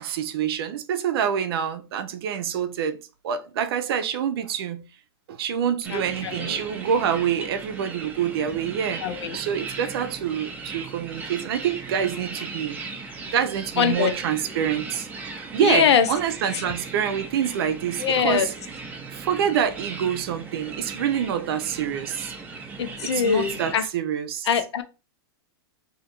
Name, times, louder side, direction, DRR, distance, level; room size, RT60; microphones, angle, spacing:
voice 1, 0.0-3.0 3.2-4.9 5.3-12.8 13.3-15.1 15.5-18.5 19.1-22.3 22.8-24.5, right 8 dB, 65° right, 0.6 m, -26 dB
sound 1, 5.8-23.8, right 4 dB, 10° right, 0.7 m, -37 dB
voice 2, 5.9-6.6 9.0-9.4 13.8-14.1 15.6-16.1 16.5-16.6 18.0-18.5 22.8-23.9 24.5-24.8, left 7 dB, 90° left, 0.6 m, -22 dB
2.8 x 2.5 x 4.3 m
hypercardioid pair, 145°, 14 cm